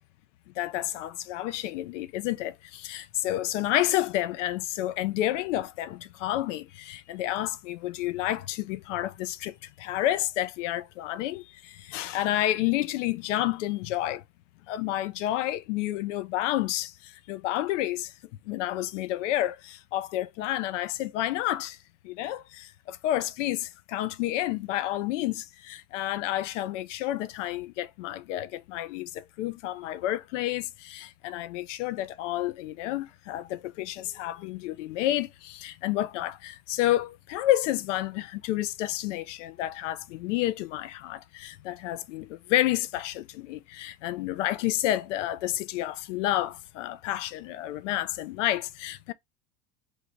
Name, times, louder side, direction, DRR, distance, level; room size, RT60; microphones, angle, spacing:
voice 1, 0.6-14.2 14.7-18.1 18.5-21.8 22.0-49.1, left 14 dB, 85° left, 0.5 m, -30 dB
2.8 x 2.7 x 4.4 m
supercardioid pair, 125°, 36 cm